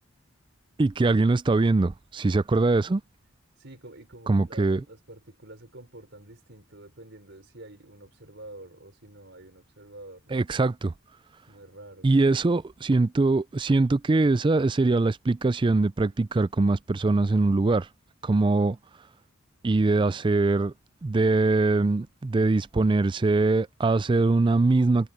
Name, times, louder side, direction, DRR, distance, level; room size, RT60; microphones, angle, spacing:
voice 1, 0.8-3.0 4.3-4.8 10.3-10.9 12.0-17.9 18.2-18.8 19.6-20.7 21.0-25.1, right 3 dB, 25° right, 0.4 m, -22 dB
voice 2, 3.6-10.5 11.5-12.1, right 1 dB, 60° right, 5.2 m, -47 dB
head